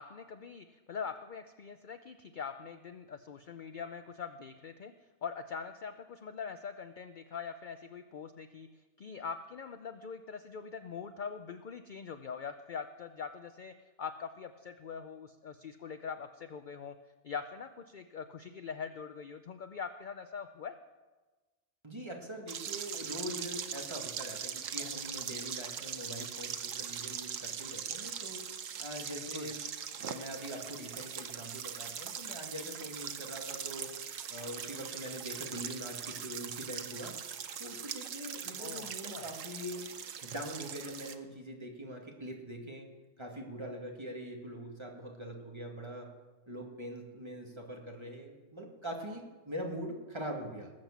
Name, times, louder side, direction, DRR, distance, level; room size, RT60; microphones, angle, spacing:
voice 1, 0.0-4.9 5.2-8.7 9.0-17.0 17.2-20.8 29.1-29.5 38.6-39.3, left 6 dB, 50° left, 9 dB, 0.6 m, -43 dB
voice 2, 21.8-28.5 28.8-29.6 30.0-33.9 34.3-37.2 37.6-39.8 40.2-42.9 43.2-46.1 46.5-50.7, equal, 20° right, 0 dB, 2.2 m, -43 dB
sound 1, 22.5-41.1, right 8 dB, 85° right, 1.2 m, -41 dB
19.5 x 7.5 x 7.3 m, 1.2 s
omnidirectional pair, 1.3 m